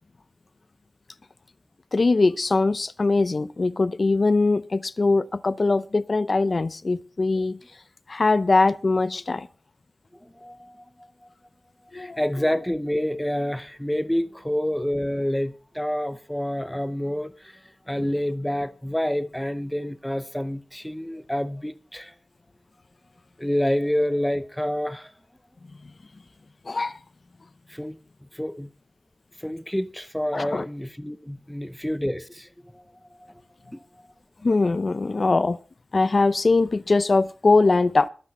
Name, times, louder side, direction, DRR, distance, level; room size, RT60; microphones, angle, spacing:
voice 1, 1.9-7.6 8.1-9.5 11.9-12.2 26.7-27.0 30.3-30.6 34.4-35.6 35.9-38.1, left 3 dB, 50° left, 0.6 m, -21 dB
voice 2, 10.2-11.1 11.9-22.1 23.4-25.1 27.7-28.0 28.3-28.7 29.4-32.8 33.2-33.3 33.7-33.8, equal, 5° left, 0.7 m, -28 dB
22.0 x 8.2 x 4.2 m
wide cardioid pair, 90°, 0 cm